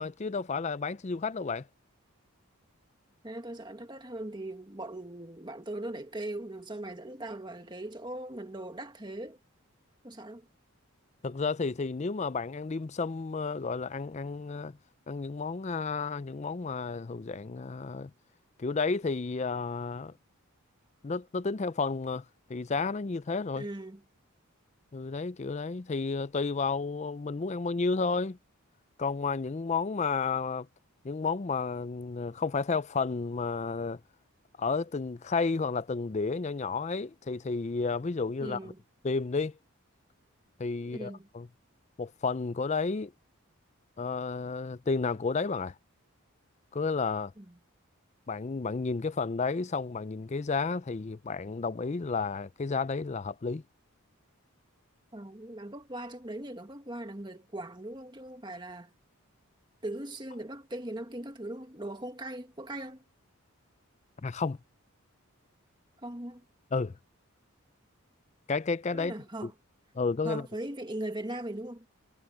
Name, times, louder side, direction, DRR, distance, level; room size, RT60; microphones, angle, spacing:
voice 1, 0.0-1.7 11.2-14.8 15.1-18.1 18.6-20.1 21.0-22.2 22.5-23.7 24.9-28.4 29.0-30.7 31.0-34.0 34.6-38.7 39.0-39.6 40.6-41.5 42.0-43.1 44.0-45.7 46.7-47.3 48.3-53.6 64.2-64.6 66.7-67.0 68.5-69.1 69.4-69.5 70.0-70.5, left 4 dB, 30° left, 0.4 m, -31 dB
voice 2, 3.2-9.4 10.0-10.5 23.5-24.0 38.4-38.8 40.8-41.3 47.4-47.6 55.1-58.9 59.8-63.0 66.0-66.4 68.9-69.5 70.2-71.9, right 1 dB, 20° right, 1.8 m, -39 dB
head